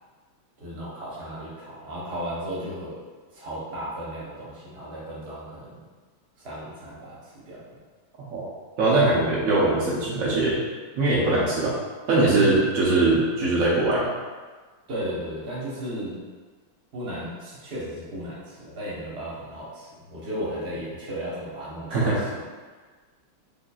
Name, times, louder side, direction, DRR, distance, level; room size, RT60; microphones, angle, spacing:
voice 1, 0.6-3.0 3.3-5.8 6.4-7.8 12.2-12.7 14.9-16.2 16.9-22.4, right 1 dB, 40° right, -7 dB, 0.9 m, -35 dB
voice 2, 8.8-10.6 11.0-11.8 12.1-14.1 21.9-22.2, right 2 dB, 90° right, -6 dB, 0.7 m, -21 dB
5.1 x 2.7 x 2.3 m, 1.4 s
omnidirectional pair, 2.3 m